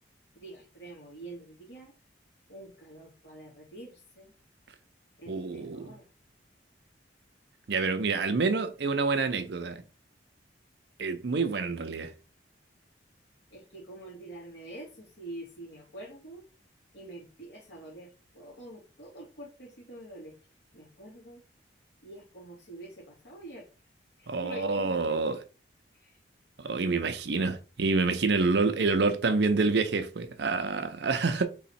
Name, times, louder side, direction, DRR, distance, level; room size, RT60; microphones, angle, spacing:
voice 1, 0.3-1.9 2.5-4.3 5.2-6.1 13.5-16.4 16.9-20.3 20.7-21.4 22.0-23.7 24.2-25.4 25.9-26.2, right 1 dB, 65° left, 2.4 m, -46 dB
voice 2, 5.3-5.9 7.7-9.8 11.0-12.1 24.3-25.4 26.6-31.5, right 4 dB, 65° right, 0.6 m, -27 dB
3.9 x 3.1 x 4.2 m
head